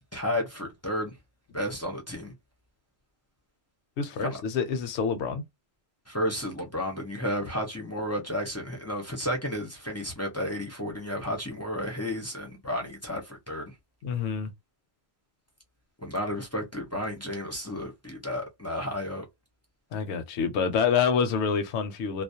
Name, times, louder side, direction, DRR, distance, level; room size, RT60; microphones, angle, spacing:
voice 1, 0.1-1.2 1.5-2.3 4.2-4.4 6.1-13.7 16.0-19.2, equal, 20° left, 0.5 m, -32 dB
voice 2, 4.0-5.4 14.0-14.5 19.9-22.2, left 6 dB, 75° left, 0.8 m, -27 dB
2.4 x 2.0 x 2.6 m
omnidirectional pair, 1.2 m